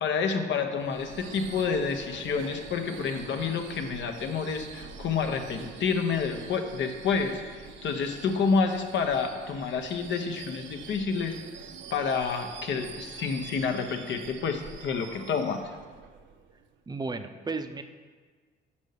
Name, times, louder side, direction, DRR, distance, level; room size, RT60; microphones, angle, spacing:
voice 1, 0.0-11.4 11.9-15.6, left 5 dB, 70° left, 6 dB, 0.9 m, -29 dB
Subway metro underground / Screech, 0.8-16.7, right 7 dB, 75° right, 0.6 m, -45 dB
voice 2, 16.9-17.8, right 3 dB, 20° right, 8 dB, 0.5 m, -34 dB
5.6 x 5.3 x 6.5 m, 1.5 s
cardioid pair, 90°, 20 cm